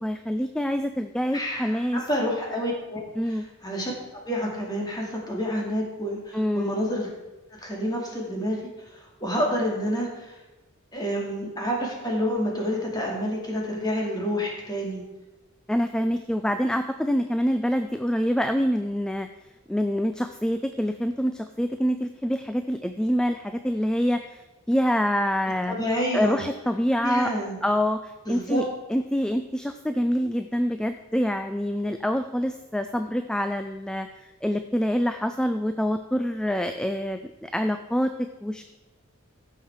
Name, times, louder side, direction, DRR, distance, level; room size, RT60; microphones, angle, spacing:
voice 1, 0.0-2.0 3.2-3.4 6.3-6.8 15.7-19.3 19.7-24.4 24.7-25.7 26.1-27.3 27.6-28.6 28.9-38.6, equal, 5° left, 8 dB, 0.3 m, -26 dB
voice 2, 1.3-3.9 4.2-7.1 7.6-8.6 8.9-10.3 10.9-15.0 25.7-26.5 27.0-27.6 28.3-28.6, equal, 20° left, -2 dB, 2.4 m, -28 dB
15.0 x 5.7 x 4.7 m, 1.1 s
head